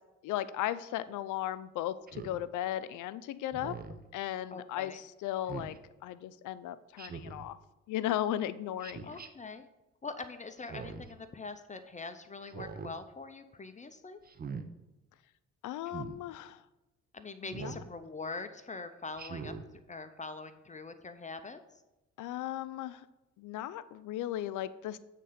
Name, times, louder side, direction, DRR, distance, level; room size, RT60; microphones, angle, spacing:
voice 1, 0.2-3.8 4.1-5.8 6.0-7.6 7.9-9.1 15.6-16.6 17.5-17.8 22.2-23.0 23.4-25.0, left 12 dB, 80° left, 15 dB, 0.5 m, -36 dB
Speech synthesizer, 2.1-2.4 3.5-4.0 5.5-5.8 7.0-7.5 8.8-9.3 10.6-11.1 12.4-12.9 14.3-14.7 15.9-16.2 17.5-17.9 19.2-19.7, right 5 dB, 30° right, 0.6 m, -42 dB
voice 2, 4.5-5.0 9.0-9.7 10.0-14.2 17.1-21.8, left 3 dB, 25° left, 9 dB, 0.5 m, -43 dB
8.4 x 3.7 x 5.7 m, 1.0 s
cardioid pair, 90°, 30 cm